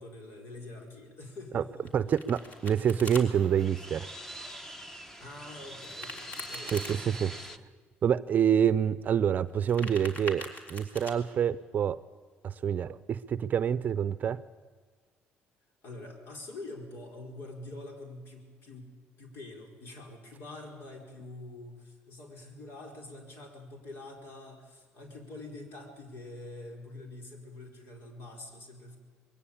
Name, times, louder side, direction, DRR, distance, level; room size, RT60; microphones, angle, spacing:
voice 1, 0.0-2.1 5.2-7.6 15.8-29.0, left 2 dB, 65° left, 2 dB, 4.8 m, -46 dB
Domestic sounds home sounds, 1.8-3.2 5.8-7.0 9.5-11.1, left 2 dB, 40° left, 3.6 m, -42 dB
voice 2, 1.9-4.1 6.7-7.3 8.0-10.4 10.7-12.0 12.4-14.4, right 8 dB, 45° right, 15 dB, 0.6 m, -27 dB
sound 1, 2.4-7.6, right 1 dB, 10° left, 1.2 m, -44 dB
22.0 x 17.0 x 8.8 m, 1.6 s
cardioid pair, 110°, 4 cm